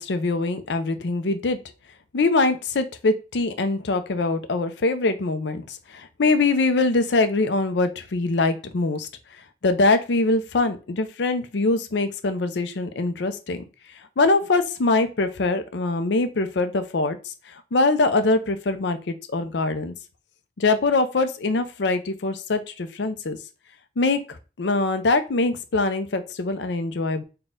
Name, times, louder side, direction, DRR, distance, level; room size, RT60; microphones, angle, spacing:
voice 1, 0.0-1.6 2.1-9.1 9.6-13.6 14.2-17.3 17.7-19.9 20.6-23.4 24.0-27.2, left 3 dB, 70° left, 9 dB, 0.5 m, -23 dB
4.2 x 2.3 x 3.7 m, 0.32 s
head